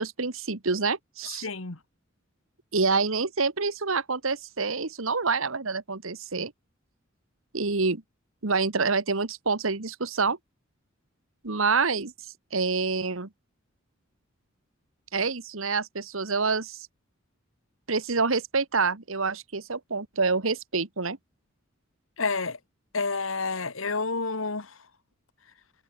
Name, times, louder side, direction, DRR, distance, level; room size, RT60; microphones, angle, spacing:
voice 1, 0.0-1.5 2.7-6.5 7.5-8.0 8.4-10.4 11.4-12.1 12.5-13.3 15.1-16.8 17.9-21.2, right 4 dB, 80° right, 1.6 m, -27 dB
voice 2, 1.4-1.8 22.2-22.6 22.9-24.7, left 4 dB, 80° left, 2.0 m, -29 dB
head